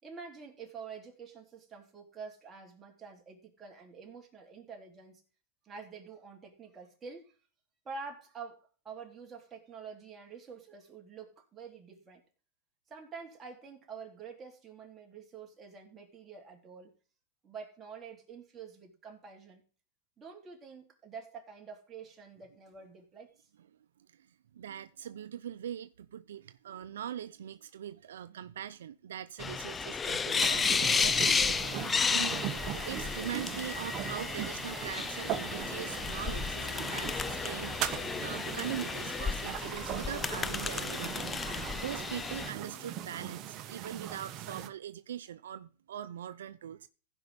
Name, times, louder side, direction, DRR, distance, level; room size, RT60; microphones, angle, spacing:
voice 1, 0.0-5.2 5.6-7.4 7.9-12.2 12.9-16.9 17.4-19.6 20.2-23.5, right 5 dB, 20° right, 3.6 m, -47 dB
voice 2, 24.5-46.9, right 10 dB, 85° right, 0.6 m, -42 dB
sound 1, 29.4-42.5, left 5 dB, 15° left, 0.5 m, -33 dB
sound 2, 30.4-44.7, right 11 dB, 40° right, 1.1 m, -40 dB
sound 3, 34.0-43.5, left 8 dB, 55° left, 2.9 m, -55 dB
15.5 x 5.4 x 5.3 m
hypercardioid pair, 130°, 0 cm